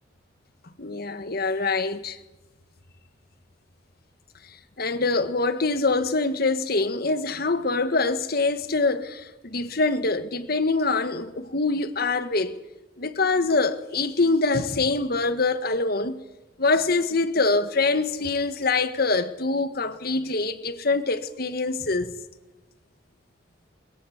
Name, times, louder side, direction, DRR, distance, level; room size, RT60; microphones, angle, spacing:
voice 1, 0.8-2.2 4.8-12.5 13.0-16.2 16.6-22.1, left 3 dB, 55° left, 1.6 m, -24 dB
22.5 x 21.0 x 8.0 m
head